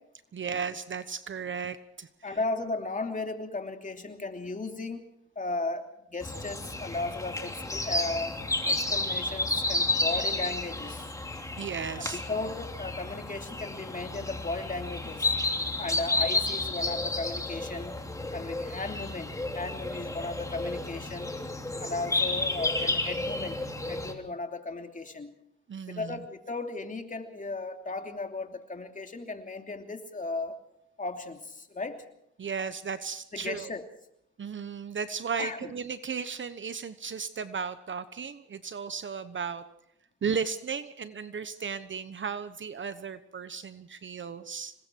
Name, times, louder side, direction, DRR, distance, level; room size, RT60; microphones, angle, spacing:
voice 1, 0.3-2.1 11.6-12.2 25.7-26.2 32.4-33.7 34.4-39.6 40.2-44.7, right 6 dB, 40° right, 13 dB, 1.1 m, -35 dB
voice 2, 2.2-5.0 5.3-8.4 8.7-11.1 12.0-15.3 15.8-18.0 18.3-21.4 21.8-25.3 25.9-30.6 31.0-32.0 33.3-33.8 35.4-35.7, left 3 dB, 25° left, 5 dB, 3.0 m, -36 dB
sound 1, 6.2-24.1, left 2 dB, 10° left, 3.0 m, -31 dB
26.5 x 21.0 x 4.7 m, 0.76 s
cardioid pair, 90°, 30 cm